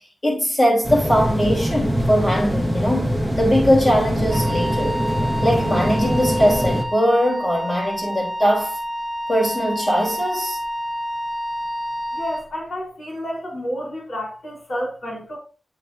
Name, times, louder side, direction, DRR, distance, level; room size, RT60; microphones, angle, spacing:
voice 1, 0.2-5.0 5.4-8.8 9.3-10.6, equal, 30° left, 3.3 m, -20 dB
sound 1, 0.8-6.8, equal, 10° left, 1.6 m, -23 dB
Wind instrument woodwind instrument, 4.3-12.5, equal, 15° right, 1.0 m, -29 dB
voice 2, 12.1-15.4, equal, 60° left, 4.0 m, -30 dB
8.2 x 6.6 x 2.7 m
wide cardioid pair, 110°, 0 cm